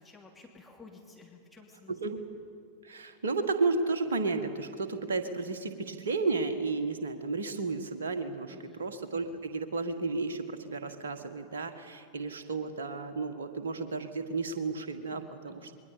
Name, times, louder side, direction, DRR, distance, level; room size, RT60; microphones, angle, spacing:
voice 1, 0.0-2.0 8.5-8.9 15.1-15.7, left 3 dB, 10° left, -1 dB, 2.8 m, -54 dB
voice 2, 1.9-2.2 2.8-15.7, right 3 dB, 65° right, 8 dB, 1.7 m, -33 dB
27.5 x 22.0 x 5.3 m, 2.5 s
figure-of-eight pair, 90°, 0 cm